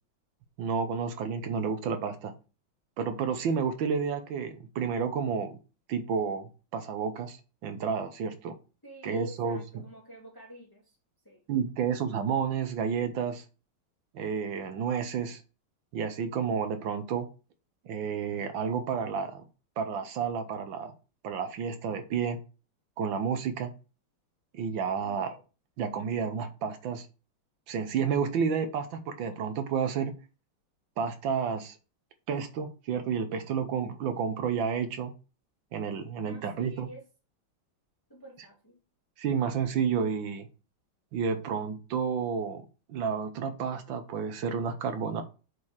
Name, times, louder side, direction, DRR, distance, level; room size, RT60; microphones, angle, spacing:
voice 1, 0.6-2.3 3.0-5.6 5.9-7.4 7.6-8.6 9.0-9.8 11.5-13.4 14.1-15.4 15.9-17.3 17.8-19.4 19.8-20.9 21.2-22.4 23.0-23.7 24.5-25.3 25.8-27.1 27.7-30.1 31.0-31.8 32.3-35.1 35.7-36.9 39.2-40.5 41.1-42.6 42.9-45.2, right 6 dB, 70° right, 1.5 m, -30 dB
voice 2, 8.8-11.0 11.2-11.4 25.0-25.3 36.2-37.1 38.1-38.7, right 1 dB, 10° left, 2.1 m, -48 dB
7.2 x 4.5 x 4.8 m
omnidirectional pair, 2.4 m